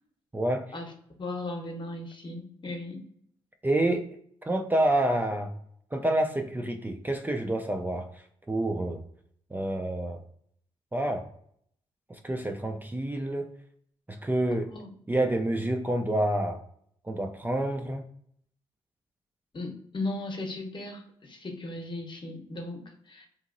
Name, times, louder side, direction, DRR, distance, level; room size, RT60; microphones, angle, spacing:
voice 1, 0.3-0.7 3.6-4.1 4.5-5.5 5.9-9.0 9.5-10.2 10.9-11.3 12.2-13.5 14.1-14.7 15.1-16.6 17.0-18.0, right 1 dB, 15° right, 3 dB, 0.4 m, -28 dB
voice 2, 1.2-3.0 14.7-14.9 19.5-23.3, left 2 dB, 40° left, 2 dB, 0.9 m, -37 dB
2.9 x 2.6 x 2.6 m, 0.68 s
supercardioid pair, 50°, 13 cm